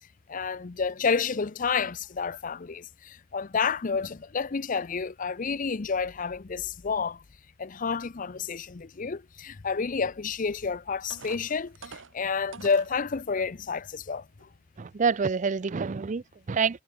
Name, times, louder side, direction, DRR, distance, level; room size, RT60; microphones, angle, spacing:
voice 1, 0.3-7.2 7.6-14.2, left 5 dB, 40° left, 0.6 m, -30 dB
sound 1, 10.5-10.6 11.1-13.0 13.6-13.7 14.2-14.4, right 5 dB, 70° right, 1.4 m, -45 dB
voice 2, 14.8-16.8, right 5 dB, 40° right, 0.4 m, -27 dB
head